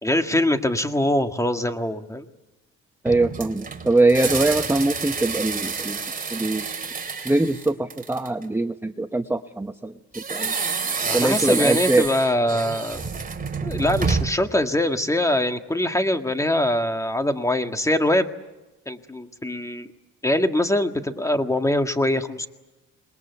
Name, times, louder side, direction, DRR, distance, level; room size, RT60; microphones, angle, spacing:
voice 1, 0.0-2.3 11.0-13.0 13.6-18.3 18.9-19.9 20.2-22.5, left 1 dB, 10° left, 7 dB, 1.8 m, -23 dB
voice 2, 3.0-6.0 6.3-6.6 7.2-9.9 10.3-10.5 11.1-12.1, right 2 dB, 10° right, 8 dB, 0.9 m, -22 dB
sound 1, 3.1-8.4 10.1-14.5, right 5 dB, 30° right, 3.2 m, -28 dB
27.0 x 21.5 x 8.2 m, 1.0 s
cardioid pair, 90°, 30 cm